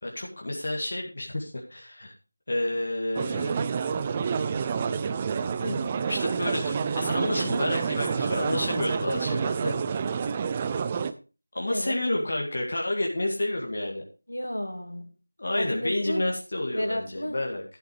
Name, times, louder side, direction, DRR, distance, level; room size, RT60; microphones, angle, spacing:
voice 1, 0.0-2.1 2.5-3.6 6.1-9.8 11.5-14.0 15.4-17.6, left 1 dB, 45° left, 0 dB, 2.1 m, -30 dB
sound 1, 3.1-11.1, right 6 dB, 15° right, 0.5 m, -28 dB
voice 2, 5.6-5.9 11.7-12.0 14.3-15.1 15.6-16.2 16.7-17.4, equal, 85° left, 4 dB, 3.0 m, -32 dB
12.5 x 6.6 x 4.7 m, 0.33 s
figure-of-eight pair, 170°, 0 cm